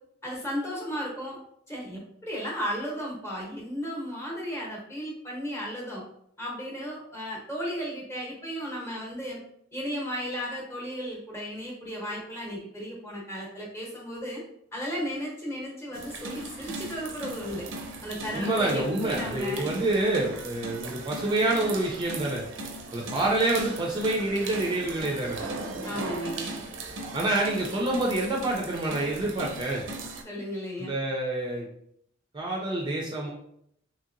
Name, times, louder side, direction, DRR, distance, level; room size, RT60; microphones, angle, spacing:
voice 1, 0.2-1.4 1.7-6.0 6.4-9.4 9.7-14.4 14.7-17.7 18.0-19.7 25.8-26.6 30.2-30.9, equal, 15° left, -3 dB, 0.8 m, -34 dB
sound 1, 15.9-30.2, right 2 dB, 90° right, 0.5 m, -38 dB
voice 2, 18.3-22.4 22.9-25.4 27.1-29.8 30.8-31.7 32.3-33.3, right 2 dB, 25° right, -2 dB, 0.4 m, -27 dB
3.0 x 2.8 x 2.5 m, 0.71 s
head